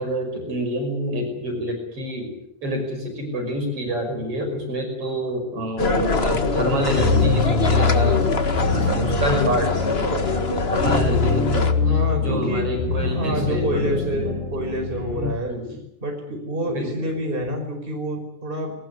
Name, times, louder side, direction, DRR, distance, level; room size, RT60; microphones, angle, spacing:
voice 1, 0.0-2.3 2.6-8.2 8.6-9.7 10.0-11.8 12.1-14.0 14.5-14.6 15.4-15.8 16.7-17.1, equal, 45° right, 4 dB, 6.6 m, -27 dB
sound 1, 5.8-11.7, left 3 dB, 30° left, 1.2 m, -23 dB
sound 2, 6.9-15.3, left 4 dB, 80° left, 8.8 m, -24 dB
voice 2, 11.8-12.7 13.0-15.5 16.0-18.7, equal, 15° right, 3 dB, 5.2 m, -27 dB
21.5 x 19.5 x 9.9 m, 0.78 s
omnidirectional pair, 3.5 m